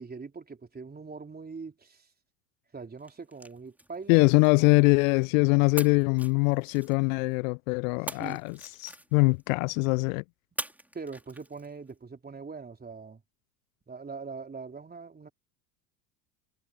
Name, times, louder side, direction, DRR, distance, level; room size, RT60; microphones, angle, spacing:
voice 1, 0.0-2.1 2.7-4.2 4.6-4.8 8.0-8.4 10.9-13.2 13.9-15.3, right 4 dB, 20° right, 3.6 m, -42 dB
sound 1, 3.0-5.3 5.8-7.3 8.1-9.5 10.6-11.9, right 1 dB, 5° right, 3.9 m, -43 dB
voice 2, 4.1-10.2, left 32 dB, 55° left, 0.6 m, -23 dB
hypercardioid pair, 75°, 49 cm